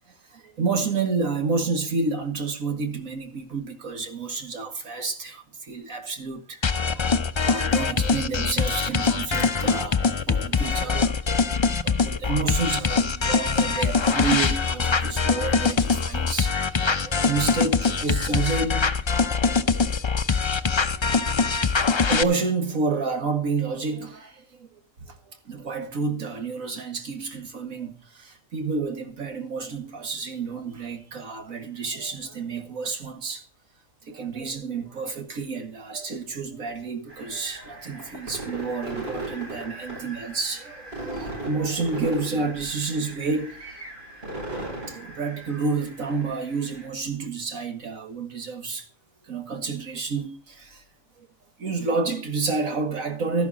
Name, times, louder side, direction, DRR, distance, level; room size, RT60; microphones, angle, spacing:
voice 1, 0.1-7.1 7.4-11.2 11.5-18.9 19.2-19.3 20.5-20.6 20.9-21.7 22.1-24.7 25.0-33.4 34.0-43.8 44.9-48.9 49.2-50.8 51.2-51.3 51.6-53.5, right 4 dB, 90° right, 2.3 m, -30 dB
sound 1, 6.6-22.2, left 5 dB, 40° left, 0.4 m, -23 dB
sound 2, 37.1-46.9, right 2 dB, 45° right, 7.2 m, -38 dB
13.0 x 11.5 x 4.1 m
omnidirectional pair, 1.4 m